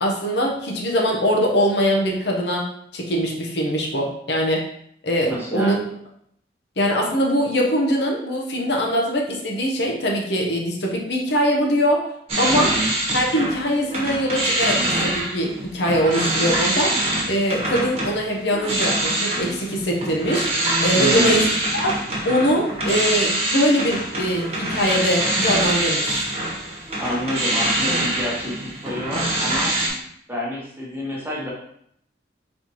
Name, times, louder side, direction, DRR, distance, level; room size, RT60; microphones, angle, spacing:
voice 1, 0.0-2.6 2.9-4.6 5.0-5.7 6.8-12.0 12.4-12.7 13.1-20.5 20.8-21.4 21.8-22.0 22.2-26.3, equal, 70° left, -1 dB, 0.9 m, -22 dB
voice 2, 5.3-5.8 12.5-12.9 21.0-21.5 27.0-29.7 30.3-31.5, equal, 10° right, -4 dB, 1.0 m, -28 dB
sound 1, 12.3-13.6 13.9-29.9, right 1 dB, 35° right, 1.2 m, -24 dB
4.3 x 4.1 x 3.0 m, 0.71 s
head